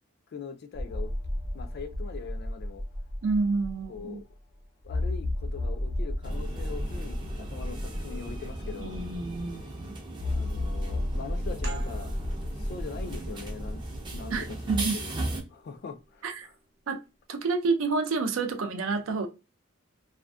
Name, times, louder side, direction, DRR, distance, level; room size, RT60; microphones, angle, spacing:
voice 1, 0.3-1.1 1.5-2.8 3.9-4.2 4.8-9.0 10.3-12.1 12.6-13.8 14.1-15.1 15.5-16.5, left 5 dB, 50° left, 0.3 m, -42 dB
sound 1, 0.7-4.0 4.3-4.4 4.8-9.4 10.2-14.5, left 1 dB, 85° left, 0.9 m, -33 dB
voice 2, 3.2-4.2 8.8-9.9 14.3-15.0 16.2-16.5 16.9-17.0 17.3-19.3, right 4 dB, 80° right, 0.5 m, -29 dB
sound 2, 6.2-15.4, right 2 dB, 25° right, 0.4 m, -38 dB
sound 3, 11.6-16.9, right 4 dB, 60° right, 0.8 m, -49 dB
2.5 x 2.5 x 2.2 m
head